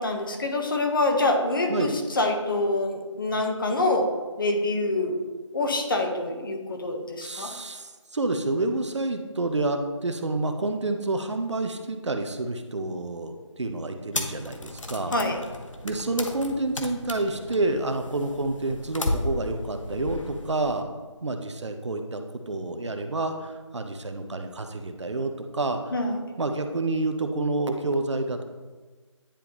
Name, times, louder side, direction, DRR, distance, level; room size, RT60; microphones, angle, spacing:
voice 1, 0.0-5.2 5.5-7.5 15.1-15.4 25.9-26.2, left 2 dB, 40° left, 3 dB, 0.9 m, -26 dB
voice 2, 7.2-15.1 15.8-20.9 21.2-25.9 26.4-28.4, right 2 dB, 65° right, 6 dB, 0.7 m, -29 dB
sound 1, 14.1-20.8, left 2 dB, 75° left, 0.9 m, -34 dB
10.0 x 3.5 x 3.0 m, 1.3 s
figure-of-eight pair, 160°, 16 cm